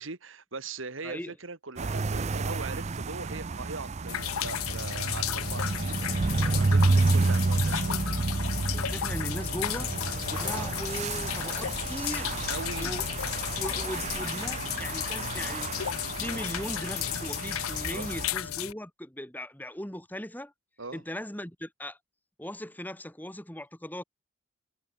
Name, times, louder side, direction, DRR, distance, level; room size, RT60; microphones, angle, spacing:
voice 1, 0.0-8.0 12.5-13.0 16.2-16.4 17.9-18.1 20.8-21.0, right 3 dB, 70° right, 1.9 m, -41 dB
voice 2, 1.0-1.3 8.7-9.9 10.3-12.3 12.8-13.1 13.6-15.7 16.2-20.5 20.9-22.0 22.4-24.0, left 1 dB, 10° left, 2.2 m, -38 dB
sound 1, 1.8-18.3, right 3 dB, 30° right, 0.4 m, -30 dB
sound 2, 4.1-18.7, left 12 dB, 90° left, 0.5 m, -34 dB
head